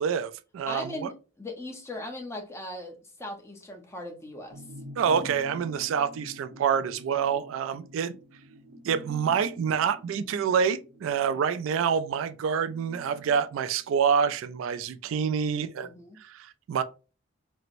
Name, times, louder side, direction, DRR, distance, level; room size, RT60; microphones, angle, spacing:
voice 1, 0.0-1.1 5.0-8.1 8.8-15.9 16.2-16.8, right 7 dB, 80° right, 0.3 m, -27 dB
voice 2, 0.7-4.6 15.8-16.2, left 1 dB, 15° left, 0.7 m, -39 dB
sound 1, 4.5-14.3 14.7-14.8, left 1 dB, 55° right, 0.8 m, -47 dB
4.3 x 2.1 x 2.5 m
head